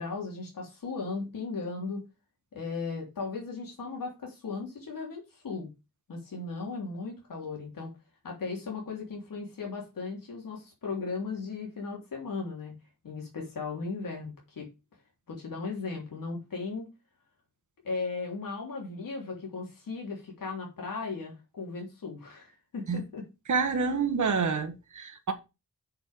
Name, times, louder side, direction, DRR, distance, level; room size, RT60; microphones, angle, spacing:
voice 1, 0.0-2.0 2.5-5.7 6.1-7.9 8.2-12.7 13.0-14.7 15.3-16.9 17.8-23.2, left 4 dB, 80° left, 3.3 m, -36 dB
voice 2, 23.5-25.3, right 5 dB, 60° right, 1.6 m, -28 dB
6.7 x 6.4 x 5.1 m
wide cardioid pair, 135°, 33 cm